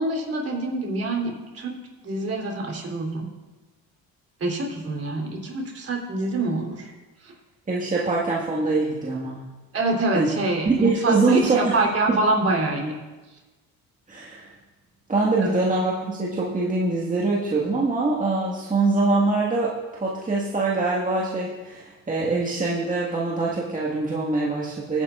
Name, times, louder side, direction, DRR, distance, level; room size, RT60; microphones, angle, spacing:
voice 1, 0.0-1.7 2.0-3.3 4.4-6.9 7.2-7.3 9.7-12.9 15.4-15.6, right 2 dB, 40° right, 0 dB, 3.4 m, -26 dB
voice 2, 7.7-9.4 10.1-10.3 10.7-11.8 14.1-14.5 15.1-25.0, right 3 dB, 20° right, -5 dB, 1.8 m, -23 dB
20.5 x 9.8 x 2.5 m, 1.2 s
supercardioid pair, 90°, 35 cm